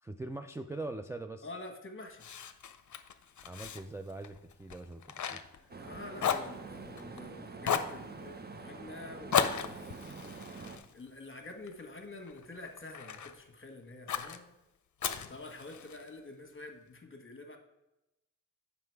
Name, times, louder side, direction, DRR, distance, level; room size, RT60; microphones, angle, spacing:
voice 1, 0.0-1.5 3.4-5.4, right 2 dB, 10° right, 5 dB, 0.4 m, -42 dB
voice 2, 1.4-2.3 5.5-9.9 10.9-14.5 15.3-17.6, left 2 dB, 35° left, 6 dB, 1.4 m, -47 dB
Fire, 2.2-5.9 6.2-7.2 7.6-8.0 9.3-11.7 12.2-13.4 14.1-14.4 15.0-16.1, left 7 dB, 60° left, 0.7 m, -35 dB
sound 1, 5.7-10.8, right 4 dB, 30° right, 0.7 m, -46 dB
7.7 x 5.7 x 4.6 m, 0.93 s
cardioid pair, 70°, 34 cm